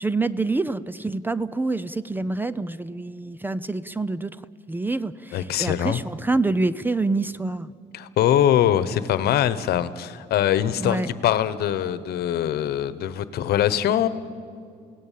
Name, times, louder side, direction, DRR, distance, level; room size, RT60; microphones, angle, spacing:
voice 1, 0.0-4.4 4.7-7.7 10.8-11.1, right 3 dB, 10° right, 17 dB, 0.5 m, -26 dB
voice 2, 5.3-6.0 7.9-14.1, left 11 dB, 70° left, 14 dB, 1.2 m, -22 dB
28.5 x 17.5 x 7.5 m, 2.3 s
cardioid pair, 110°, 17 cm